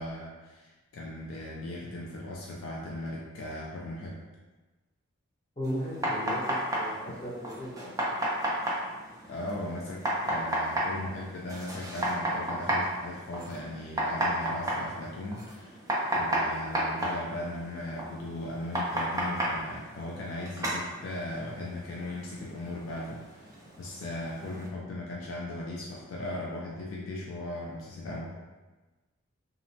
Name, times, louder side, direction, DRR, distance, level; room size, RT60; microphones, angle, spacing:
voice 1, 0.0-4.2 9.3-15.8 16.1-28.4, left 1 dB, 65° left, -3 dB, 0.4 m, -38 dB
voice 2, 5.6-7.9, equal, 25° left, -9 dB, 0.9 m, -36 dB
sound 1, 5.6-24.7, right 1 dB, 15° right, 0.4 m, -33 dB
2.8 x 2.1 x 2.6 m, 1.2 s
head